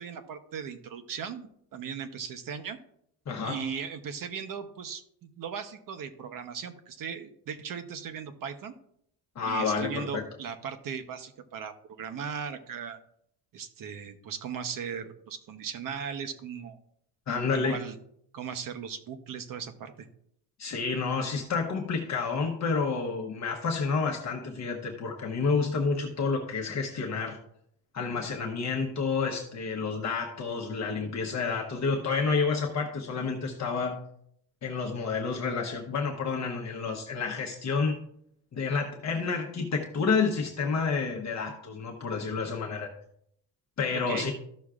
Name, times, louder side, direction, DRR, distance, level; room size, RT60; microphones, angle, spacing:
voice 1, 0.0-2.8 3.4-8.7 9.4-13.0 13.5-16.8 17.5-18.0 18.3-20.1 43.9-44.3, right 7 dB, 50° right, 8 dB, 0.9 m, -38 dB
voice 2, 3.3-3.6 9.3-10.2 17.3-17.8 20.6-27.4 27.9-33.9 34.6-38.0 38.5-42.9 43.8-44.3, left 4 dB, 40° left, 1 dB, 1.0 m, -29 dB
14.0 x 6.2 x 2.4 m, 0.71 s
cardioid pair, 160°, 41 cm